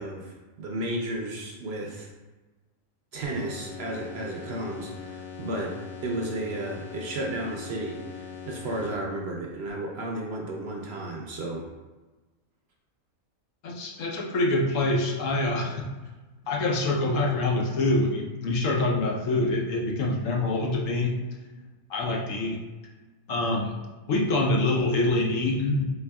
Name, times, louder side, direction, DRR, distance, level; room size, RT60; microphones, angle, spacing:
voice 1, 0.0-2.1 3.1-5.8 6.0-11.6, right 1 dB, 60° right, -1 dB, 0.7 m, -33 dB
sound 1, 3.2-9.3, left 6 dB, 55° left, 0.7 m, -41 dB
voice 2, 13.6-15.9 16.5-21.2 21.9-22.6 23.3-23.8 24.1-25.9, left 2 dB, 70° left, -1 dB, 1.1 m, -25 dB
4.4 x 4.0 x 2.3 m, 1.2 s
omnidirectional pair, 1.4 m